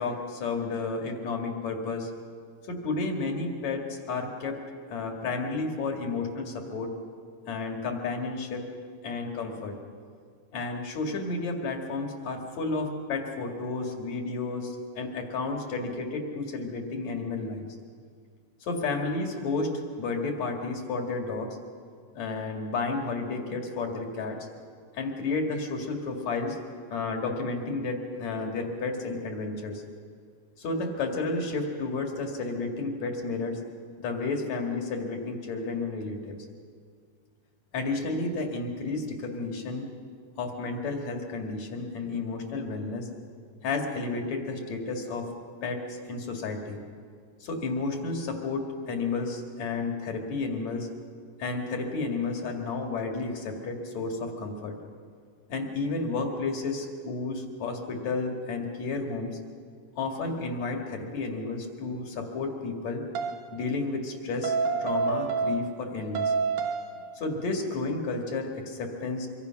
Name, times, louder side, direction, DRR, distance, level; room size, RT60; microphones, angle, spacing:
voice 1, 0.0-2.1 2.7-4.6 4.9-6.9 7.5-8.6 9.0-9.8 10.5-17.7 18.6-21.6 22.1-24.5 24.9-26.6 26.9-29.8 30.6-33.6 34.0-36.4 37.7-39.9 40.4-43.1 43.6-45.3 45.6-46.8 47.4-50.9 51.4-54.7 55.5-59.4 60.0-63.0 63.5-66.3 66.9-69.3, left 3 dB, 60° left, 3 dB, 3.3 m, -32 dB
sound 1, 63.2-63.5 64.4-65.9 66.2-67.0, right 5 dB, 70° right, 2.5 m, -28 dB
25.0 x 24.5 x 5.9 m, 2.1 s
omnidirectional pair, 3.8 m